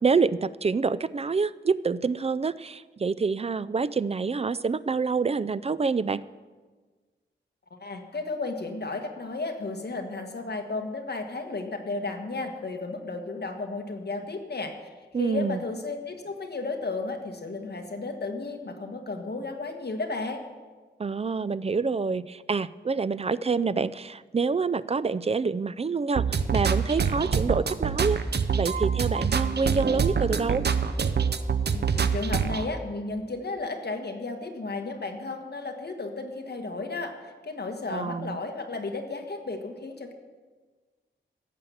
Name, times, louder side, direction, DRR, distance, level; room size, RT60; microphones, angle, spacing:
voice 1, 0.0-6.2 15.1-15.6 21.0-28.2 28.5-30.6 37.9-38.4, right 4 dB, 30° right, 18 dB, 0.3 m, -27 dB
voice 2, 7.7-14.9 15.2-20.4 31.7-40.1, left 3 dB, 55° left, 4 dB, 1.5 m, -33 dB
sound 1, 26.1-32.6, right 6 dB, 60° right, 0.7 m, -25 dB
16.5 x 7.0 x 7.2 m, 1.4 s
wide cardioid pair, 110°, 20 cm